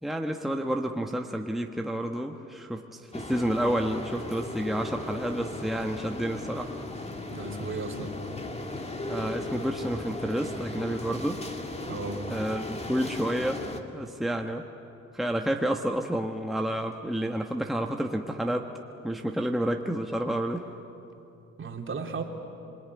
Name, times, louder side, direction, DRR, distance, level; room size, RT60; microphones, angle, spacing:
voice 1, 0.0-6.7 9.0-11.4 12.3-13.6 13.9-14.6 15.1-18.7 19.0-20.7, right 1 dB, ahead, 3 dB, 1.3 m, -30 dB
sound 1, 3.1-13.8, left 2 dB, 20° left, 2.3 m, -37 dB
voice 2, 7.3-8.2 11.8-12.3 21.6-22.2, right 4 dB, 40° right, 2 dB, 3.1 m, -35 dB
26.5 x 22.0 x 9.6 m, 2.9 s
cardioid pair, 90°, 30 cm